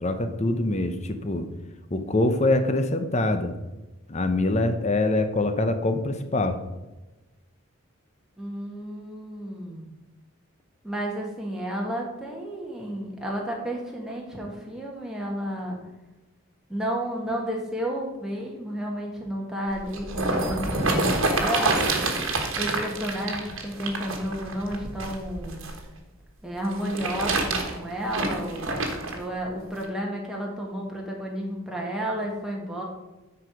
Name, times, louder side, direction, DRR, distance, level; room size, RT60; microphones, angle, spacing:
voice 1, 0.0-1.5 1.9-3.5 4.1-6.6, left 2 dB, 30° left, 8 dB, 0.8 m, -24 dB
voice 2, 8.4-9.9 10.8-15.8 16.7-22.3 22.5-25.7 26.4-32.8, equal, 5° right, -2 dB, 1.6 m, -32 dB
sound 1, 19.7-25.8 26.7-29.2 29.8-29.9, right 2 dB, 65° right, 1.4 m, -27 dB
9.8 x 4.8 x 5.1 m, 1.1 s
head